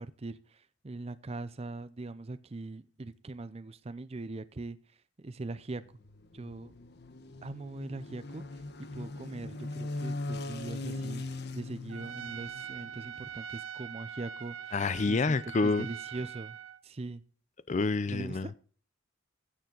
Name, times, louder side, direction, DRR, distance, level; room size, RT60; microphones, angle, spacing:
voice 1, 0.0-4.8 5.2-5.8 6.3-6.7 7.4-8.6 8.9-11.2 11.5-14.7 15.1-16.6 16.8-17.2 18.1-18.6, right 2 dB, 30° right, 0.5 m, -41 dB
sound 1, 5.7-13.4, left 2 dB, 55° left, 1.1 m, -40 dB
Trumpet, 11.9-16.8, right 8 dB, 90° right, 0.7 m, -43 dB
voice 2, 14.7-15.9 17.7-18.5, left 3 dB, 35° left, 0.4 m, -28 dB
15.5 x 6.9 x 3.9 m
head